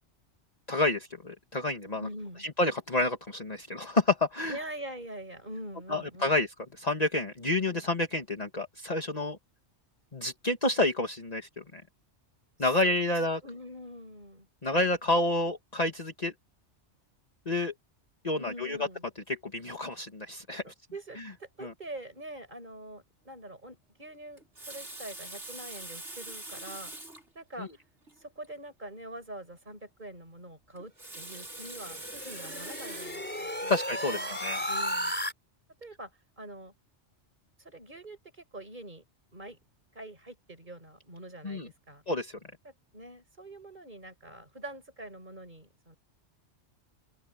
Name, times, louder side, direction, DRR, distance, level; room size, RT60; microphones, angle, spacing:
voice 1, 0.7-2.1 2.4-4.6 5.9-6.5 6.8-9.4 10.1-11.8 12.6-13.4 14.6-16.3 17.5-17.7 18.2-18.8 19.3-20.6 21.6-21.7 27.6-27.7 33.7-34.6 41.4-41.7 42.1-42.4, left 2 dB, 35° left, 1.9 m, -29 dB
voice 2, 2.0-2.5 4.5-6.4 12.6-14.5 18.4-19.0 20.6-26.9 27.3-27.7 28.2-33.7 34.1-34.3 34.7-35.1 35.8-36.1 36.4-36.7 37.6-39.0 39.3-39.6 39.9-42.0 42.6-46.0, right 1 dB, 40° right, 6.4 m, -44 dB
Water tap faucet, 24.4-27.3 28.1-28.2 28.4-28.5 30.8-33.4 34.0-34.2, right 2 dB, 80° right, 6.1 m, -43 dB
sound 1, 31.4-35.3, equal, 10° left, 4.3 m, -34 dB
open air
omnidirectional pair, 1.2 m